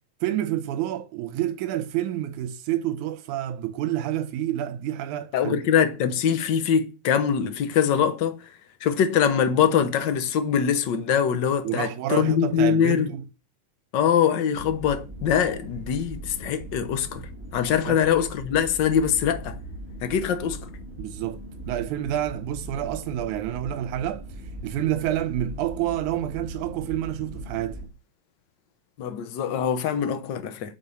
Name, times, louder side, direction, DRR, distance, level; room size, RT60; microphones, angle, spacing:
voice 1, 0.2-5.6 11.6-13.2 17.9-18.0 21.0-24.2 24.6-27.8, right 12 dB, 85° right, 2.1 m, -28 dB
voice 2, 5.3-8.4 8.8-13.1 13.9-19.6 20.0-20.7 29.0-30.7, left 8 dB, 65° left, 1.1 m, -23 dB
sound 1, 14.5-27.9, right 1 dB, 5° right, 1.1 m, -39 dB
9.2 x 5.3 x 7.0 m
omnidirectional pair, 3.4 m